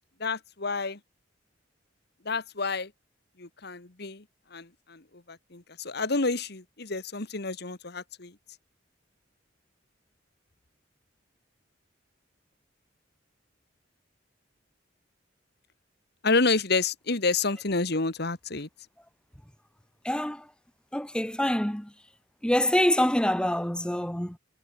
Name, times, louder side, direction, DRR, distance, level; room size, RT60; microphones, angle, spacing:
voice 1, 0.2-1.0 2.3-2.9 3.4-4.2 4.5-5.0 5.3-8.4 16.2-18.7, left 3 dB, 60° left, 1.9 m, -29 dB
voice 2, 20.0-20.4 20.9-21.9 22.4-24.4, left 1 dB, 5° left, 1.0 m, -25 dB
head